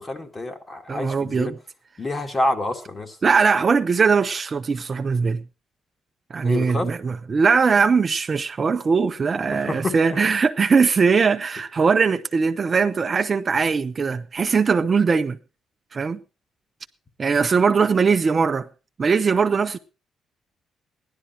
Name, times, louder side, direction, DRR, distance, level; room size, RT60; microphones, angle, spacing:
voice 1, 0.0-1.5 2.0-3.2 6.4-6.9 9.5-9.9, left 1 dB, 25° left, 2.1 m, -27 dB
voice 2, 0.9-1.5 3.2-5.4 6.3-15.4 15.9-16.2 17.2-18.7 19.0-19.8, right 5 dB, 40° right, 0.6 m, -20 dB
15.5 x 11.5 x 4.3 m
cardioid pair, 90°, 0 cm